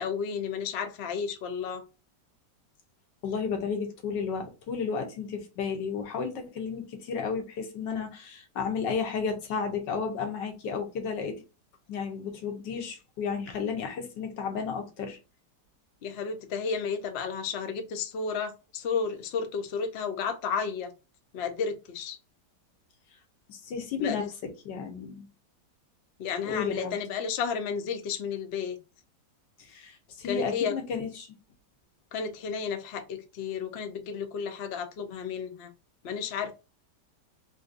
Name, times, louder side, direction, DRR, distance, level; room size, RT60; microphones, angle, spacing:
voice 1, 0.0-1.8 16.0-20.9 21.3-22.2 24.0-24.3 26.2-28.8 30.2-30.8 32.1-35.7 36.0-36.5, left 6 dB, 65° left, 0.6 m, -32 dB
voice 2, 3.2-11.4 11.9-15.2 23.5-25.3 26.4-27.0 29.6-31.3, left 5 dB, 90° left, 1.6 m, -33 dB
3.8 x 2.6 x 2.5 m
omnidirectional pair, 1.8 m